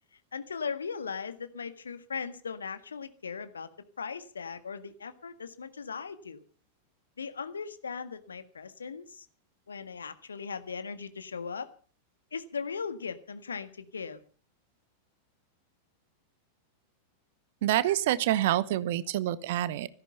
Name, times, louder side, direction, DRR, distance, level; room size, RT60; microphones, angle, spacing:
voice 1, 0.3-3.7 4.0-6.4 7.2-9.3 9.7-11.7 12.3-14.2, left 5 dB, 70° left, 11 dB, 1.6 m, -38 dB
voice 2, 17.6-19.9, right 13 dB, 55° right, 17 dB, 1.0 m, -27 dB
17.0 x 14.0 x 5.6 m, 0.41 s
figure-of-eight pair, 90°, 0 cm